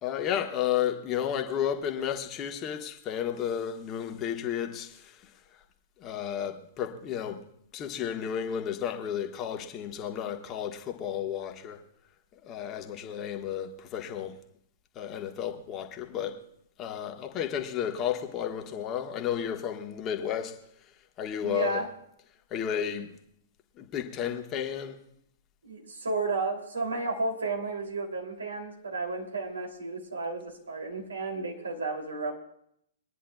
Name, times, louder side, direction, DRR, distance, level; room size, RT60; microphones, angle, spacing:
voice 1, 0.0-5.6 6.0-7.4 7.7-11.8 12.4-14.4 14.9-16.4 16.8-20.6 21.2-21.8 22.5-23.1 23.8-25.0, left 9 dB, 25° left, 1.4 m, -32 dB
voice 2, 21.4-21.9 25.6-32.3, right 3 dB, 75° right, 3.0 m, -32 dB
24.0 x 10.0 x 2.4 m
figure-of-eight pair, 110°, 0 cm